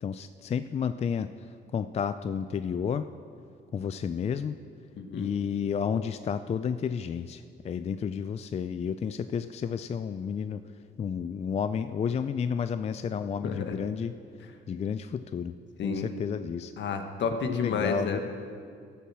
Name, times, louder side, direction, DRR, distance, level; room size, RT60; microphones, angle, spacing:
voice 1, 0.0-1.3 1.7-3.1 3.7-4.6 5.1-10.6 11.0-14.1 14.7-15.6 15.8-16.7 17.5-18.2, left 7 dB, 35° left, 11 dB, 0.3 m, -31 dB
voice 2, 5.0-5.3 13.4-13.7 14.4-14.5 15.8-16.1 16.8-18.2, left 5 dB, 65° left, 6 dB, 1.2 m, -31 dB
14.5 x 7.0 x 6.1 m, 2.4 s
cardioid pair, 90°, 20 cm